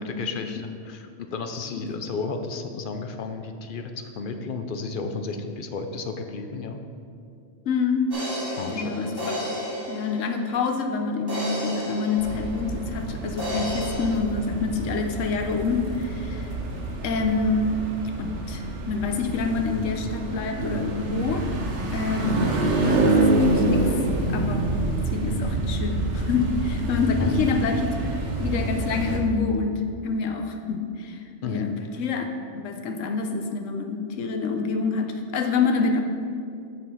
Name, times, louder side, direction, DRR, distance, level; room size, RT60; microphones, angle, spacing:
voice 1, 0.0-6.8 8.6-9.1 27.2-27.5 31.4-31.7, left 4 dB, 55° left, 6 dB, 0.6 m, -32 dB
voice 2, 7.7-8.1 8.7-9.2 9.5-9.6 9.9-16.5 17.0-17.7 18.2-21.5 21.9-22.4 22.8-23.9 24.3-24.7 25.1-28.0 28.4-31.2 31.5-31.7 32.0-32.3 32.6-36.0, left 4 dB, 85° left, 5 dB, 1.1 m, -27 dB
sound 1, 8.1-10.7 11.3-13.0 13.4-14.2, equal, 20° right, 2.1 m, -32 dB
sound 2, 12.2-29.2, right 2 dB, 70° right, 1.3 m, -27 dB
6.7 x 6.2 x 5.4 m, 2.5 s
omnidirectional pair, 1.3 m